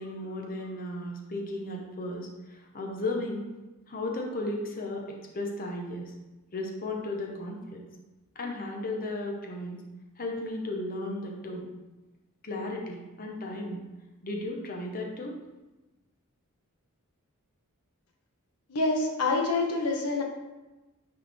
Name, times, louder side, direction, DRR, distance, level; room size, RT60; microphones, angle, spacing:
voice 1, 0.0-3.5 3.9-6.1 6.5-7.8 8.3-9.8 10.2-11.7 12.4-13.8 14.2-15.3, left 1 dB, 40° left, 0 dB, 0.9 m, -35 dB
voice 2, 18.7-20.2, left 3 dB, 85° left, 2 dB, 0.9 m, -26 dB
9.8 x 3.5 x 3.4 m, 1.1 s
head